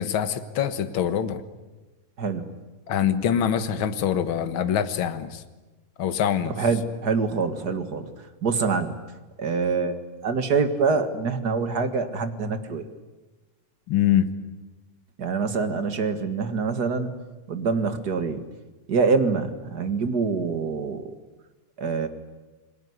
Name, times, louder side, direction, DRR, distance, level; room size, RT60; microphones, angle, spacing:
voice 1, 0.0-1.4 2.9-5.3 6.0-6.5 13.9-14.3, left 9 dB, 50° left, 10 dB, 1.8 m, -24 dB
voice 2, 2.2-2.6 6.6-8.1 8.4-9.0 9.4-12.8 15.2-17.1 17.5-18.4 18.9-21.1 21.8-22.1, right 4 dB, 40° right, 9 dB, 1.9 m, -25 dB
28.5 x 21.5 x 9.6 m, 1.2 s
omnidirectional pair, 3.4 m